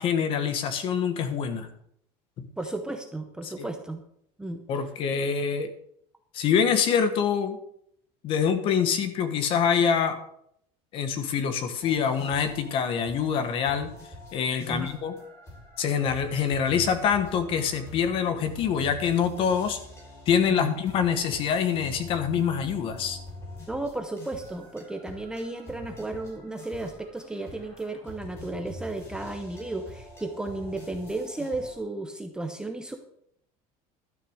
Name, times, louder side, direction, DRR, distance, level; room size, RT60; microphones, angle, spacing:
voice 1, 0.0-1.7 2.4-2.5 3.4-3.7 4.7-5.7 6.3-7.6 8.2-10.2 10.9-13.9 14.3-15.1 15.8-19.8 20.3-23.2, left 7 dB, 40° left, 9 dB, 1.3 m, -25 dB
voice 2, 2.6-4.0 4.4-4.6 14.7-14.9 20.5-20.7 23.7-33.0, right 2 dB, 5° right, 5 dB, 0.7 m, -34 dB
sound 1, 11.8-31.7, left 1 dB, 20° left, 4.5 m, -45 dB
12.5 x 6.7 x 6.5 m, 0.69 s
cardioid pair, 170°, 14 cm